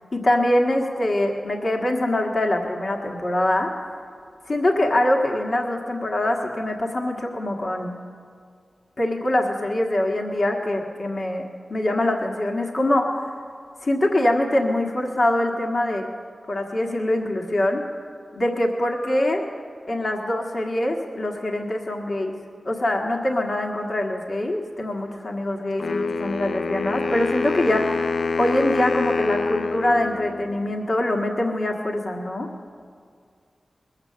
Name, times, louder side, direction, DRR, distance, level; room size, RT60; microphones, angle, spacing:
voice 1, 0.1-3.7 4.4-7.9 9.0-11.4 11.7-13.3 13.8-16.1 16.5-17.8 18.3-19.4 19.9-22.3 22.6-28.1 28.4-32.5, left 1 dB, 60° left, 1 dB, 1.6 m, -23 dB
Wind instrument woodwind instrument, 25.8-30.8, left 3 dB, 75° left, 0.3 m, -26 dB
21.0 x 8.2 x 6.7 m, 2.1 s
cardioid pair, 45°, 0 cm